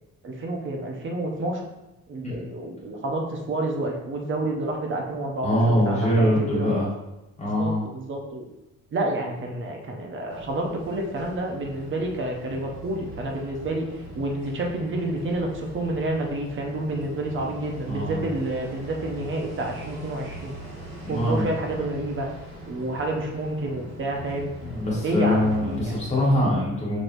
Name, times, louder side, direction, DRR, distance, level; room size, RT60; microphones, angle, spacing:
voice 1, 0.2-1.6 2.1-6.8 7.5-8.5 8.9-13.9 14.1-20.5 21.1-22.3 22.7-24.5 25.0-26.0, right 2 dB, 45° right, 1 dB, 0.8 m, -29 dB
voice 2, 5.4-6.9 7.4-7.8 17.8-18.2 21.1-21.5 24.6-27.0, left 1 dB, 25° left, -6 dB, 1.6 m, -23 dB
sound 1, 10.3-26.4, equal, 60° right, 1.5 m, -41 dB
6.0 x 3.1 x 2.6 m, 0.98 s
wide cardioid pair, 170°, 29 cm